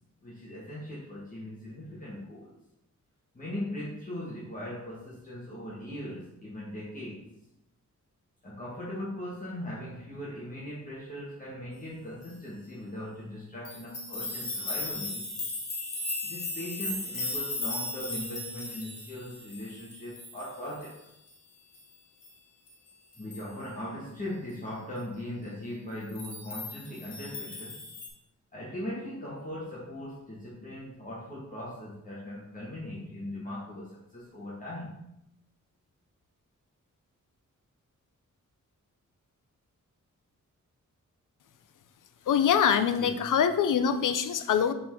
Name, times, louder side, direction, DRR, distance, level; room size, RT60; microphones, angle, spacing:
voice 1, 0.2-2.5 3.3-7.2 8.4-15.3 16.2-21.1 23.2-27.8 28.5-35.0 43.0-43.3, left 1 dB, 25° left, -7 dB, 1.3 m, -39 dB
sound 1, 13.6-21.0 21.3-21.4 21.7-21.8 22.2-22.3 22.7-22.8 23.1-23.7 26.1-28.1, left 2 dB, 50° left, 1.4 m, -37 dB
voice 2, 42.3-44.7, left 8 dB, 80° left, 10 dB, 0.5 m, -24 dB
5.6 x 3.7 x 4.4 m, 0.83 s
wide cardioid pair, 150°, 31 cm